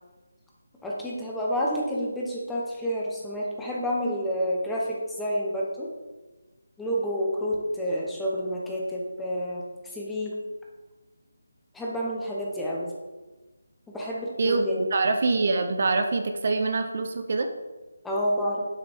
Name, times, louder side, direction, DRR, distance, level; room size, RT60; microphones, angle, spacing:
voice 1, 0.8-5.9 6.8-10.4 11.7-12.9 13.9-14.9 18.0-18.6, equal, 5° left, -4 dB, 1.0 m, -29 dB
voice 2, 14.4-17.5, right 3 dB, 45° right, 6 dB, 0.7 m, -25 dB
8.7 x 8.0 x 3.6 m, 1.2 s
figure-of-eight pair, 170°, 0 cm